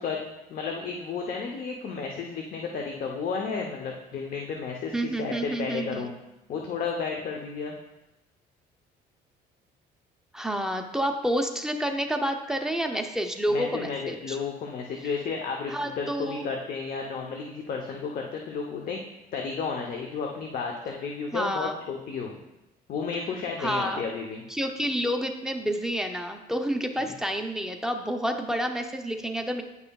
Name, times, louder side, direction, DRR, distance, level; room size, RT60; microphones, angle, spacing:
voice 1, 0.0-6.1 6.5-7.7 13.5-19.0 19.3-22.4 22.9-24.4 27.0-27.1, left 5 dB, 55° left, 1 dB, 0.8 m, -32 dB
voice 2, 4.9-6.1 10.3-14.4 15.7-16.5 21.3-21.8 23.6-24.0 24.5-29.6, equal, 5° right, 4 dB, 0.6 m, -29 dB
9.5 x 5.5 x 2.3 m, 0.96 s
cardioid pair, 110°, 17 cm